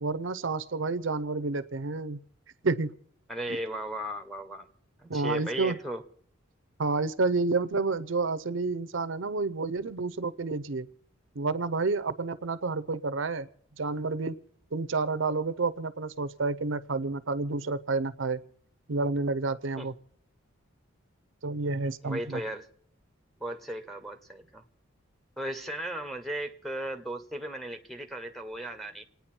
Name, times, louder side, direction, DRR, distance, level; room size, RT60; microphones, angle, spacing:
voice 1, 0.0-2.2 2.6-2.9 3.5-3.6 5.1-5.7 6.8-10.9 11.4-13.5 13.8-14.3 14.7-18.4 18.9-19.9 21.4-22.4, right 3 dB, 60° right, 15 dB, 0.6 m, -29 dB
voice 2, 3.3-4.7 5.0-6.0 19.8-19.9 22.0-22.7 23.4-24.6 25.4-29.0, right 1 dB, ahead, 5 dB, 1.0 m, -36 dB
28.0 x 9.5 x 4.4 m, 0.64 s
head